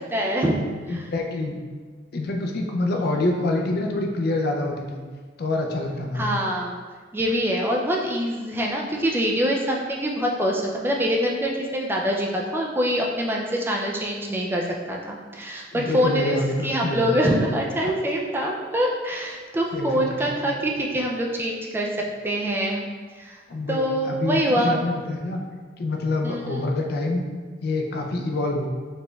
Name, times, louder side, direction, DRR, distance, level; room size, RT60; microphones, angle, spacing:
voice 1, 0.1-0.6 0.9-1.0 6.1-6.8 7.1-21.9 22.2-22.8 23.2-23.4 23.7-24.8 26.2-26.6, equal, 10° right, -1 dB, 0.3 m, -25 dB
voice 2, 0.9-1.6 2.1-5.0 5.4-6.3 15.7-17.0 17.8-17.9 19.7-20.6 23.5-25.4 25.8-27.2 27.6-28.7, left 2 dB, 60° left, 2 dB, 0.4 m, -26 dB
4.1 x 3.2 x 2.2 m, 1.5 s
head